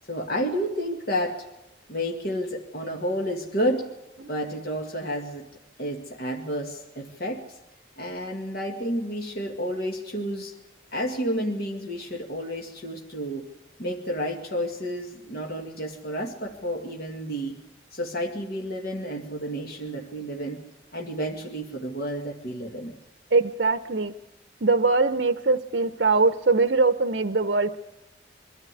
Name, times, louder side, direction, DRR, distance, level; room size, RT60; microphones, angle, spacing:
voice 1, 0.1-1.4 1.9-3.9 4.3-5.4 5.8-7.6 8.0-10.6 10.9-13.5 13.8-17.6 17.9-20.6 20.9-22.9, equal, 55° left, 1 dB, 2.1 m, -30 dB
voice 2, 23.3-24.1 24.6-27.8, right 3 dB, 60° right, 10 dB, 0.8 m, -22 dB
24.0 x 13.0 x 9.8 m, 0.99 s
head